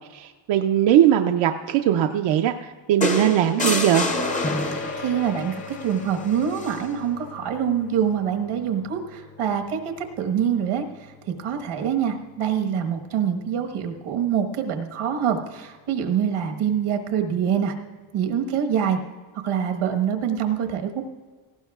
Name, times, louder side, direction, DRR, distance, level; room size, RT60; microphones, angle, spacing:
voice 1, 0.1-4.1, right 11 dB, 65° right, 5 dB, 0.6 m, -20 dB
sound 1, 3.0-5.1 6.5-6.8, left 2 dB, 15° left, 0.7 m, -26 dB
sound 2, 4.1-13.8, left 3 dB, 65° left, 2.2 m, -39 dB
voice 2, 5.0-17.7 18.1-19.0 19.4-21.0, right 8 dB, 80° right, 4 dB, 1.4 m, -25 dB
17.5 x 15.5 x 2.4 m, 1.4 s
cardioid pair, 150°, 48 cm